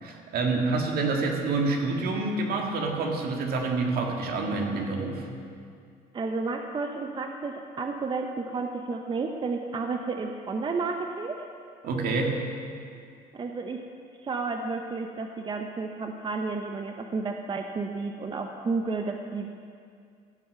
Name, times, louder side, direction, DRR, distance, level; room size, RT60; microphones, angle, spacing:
voice 1, 0.0-5.3 11.8-12.4, right 3 dB, 65° right, 1 dB, 1.9 m, -27 dB
voice 2, 6.1-11.5 13.3-13.8 14.2-19.5, right 4 dB, 30° right, 4 dB, 0.7 m, -31 dB
15.5 x 6.4 x 6.8 m, 2.3 s
cardioid pair, 110°, 17 cm